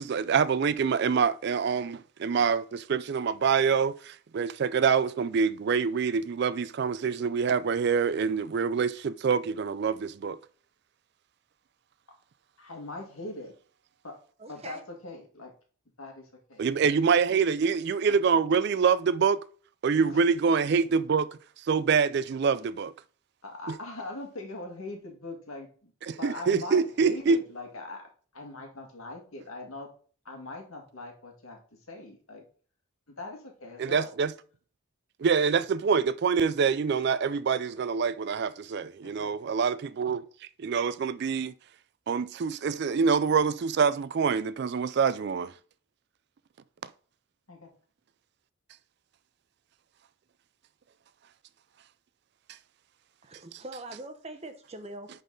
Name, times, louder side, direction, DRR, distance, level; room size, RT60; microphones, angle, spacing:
voice 1, 0.0-10.4 16.6-19.4 19.8-21.3 21.7-22.9 23.7-23.8 26.0-27.4 33.8-34.3 35.2-40.2 40.6-41.5 42.1-45.5, right 6 dB, 50° right, 0.3 m, -25 dB
voice 2, 12.6-13.5 14.0-14.2 14.5-15.5 16.0-16.6 20.1-20.2 23.4-25.9 26.2-28.1 28.3-29.9 30.3-31.6 31.9-32.4 33.2-34.1 39.0-39.5 47.5-47.7, left 2 dB, 80° left, 1.9 m, -41 dB
voice 3, 14.4-14.8 53.2-55.1, right 2 dB, 30° right, 0.9 m, -42 dB
10.5 x 4.0 x 3.8 m
head